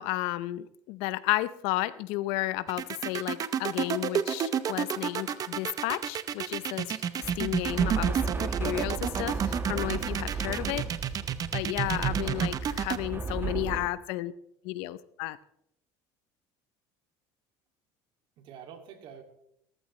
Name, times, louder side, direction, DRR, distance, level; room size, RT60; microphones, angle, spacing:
voice 1, 0.0-10.9 11.5-14.3 14.6-15.4, left 17 dB, 80° left, 16 dB, 0.7 m, -33 dB
sound 1, 2.7-13.0, right 8 dB, 40° right, 0.9 m, -30 dB
sound 2, 7.2-13.9, right 4 dB, 25° right, 1.3 m, -34 dB
voice 2, 8.1-8.5 11.4-11.6 13.4-13.8 18.4-19.2, right 8 dB, 65° right, 4 dB, 2.6 m, -49 dB
17.0 x 14.5 x 3.2 m, 0.74 s
supercardioid pair, 110°, 9 cm